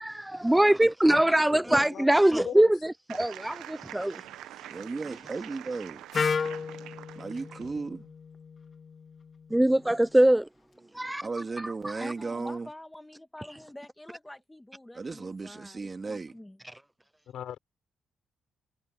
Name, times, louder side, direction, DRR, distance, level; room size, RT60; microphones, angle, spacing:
voice 1, 0.0-4.2 9.5-10.5 10.9-11.2, right 1 dB, 5° right, 0.3 m, -22 dB
voice 2, 1.5-2.7 17.3-17.6, left 10 dB, 70° left, 4.6 m, -39 dB
sound 1, 3.1-7.8, right 13 dB, 90° right, 0.9 m, -45 dB
voice 3, 4.7-6.0 7.1-8.1 11.2-12.7 14.9-16.4, right 4 dB, 30° right, 2.6 m, -35 dB
Wind instrument woodwind instrument, 6.1-10.0, left 5 dB, 45° left, 2.2 m, -34 dB
voice 4, 12.0-16.6, left 1 dB, 10° left, 1.5 m, -46 dB
cardioid pair, 90°, 0 cm